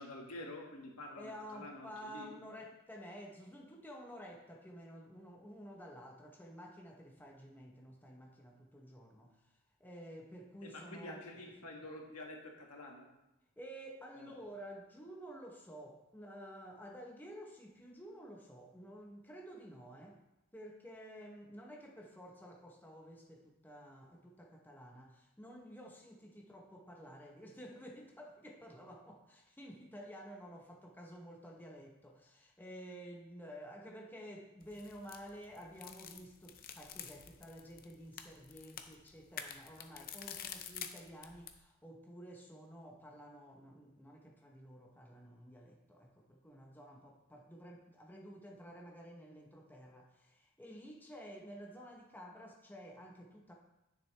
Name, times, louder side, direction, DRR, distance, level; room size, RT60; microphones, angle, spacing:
voice 1, 0.0-2.4 10.6-13.1 14.1-14.3, left 1 dB, 80° left, 0 dB, 1.7 m, -48 dB
voice 2, 1.2-11.2 13.6-20.2 20.5-53.5, equal, 10° left, 0 dB, 0.8 m, -51 dB
sound 1, 34.6-41.6, left 8 dB, 40° left, 0.6 m, -49 dB
10.5 x 6.4 x 3.2 m, 0.94 s
head